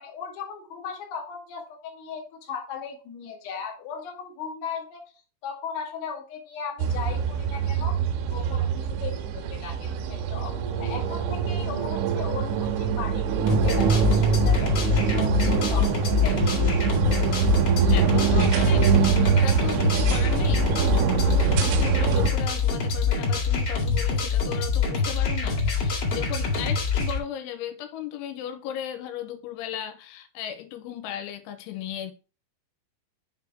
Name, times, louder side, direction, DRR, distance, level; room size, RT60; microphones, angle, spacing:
voice 1, 0.0-5.0 5.4-7.9 8.3-8.7 9.0-16.6, left 6 dB, 65° left, 1.7 m, -37 dB
Military Aircrafts Over Mexico City, 6.8-22.3, right 8 dB, 85° right, 3.0 m, -24 dB
sound 1, 13.5-27.2, left 5 dB, 45° left, 1.9 m, -25 dB
voice 2, 17.9-32.1, left 10 dB, 90° left, 3.1 m, -36 dB
6.7 x 3.5 x 4.5 m
omnidirectional pair, 5.5 m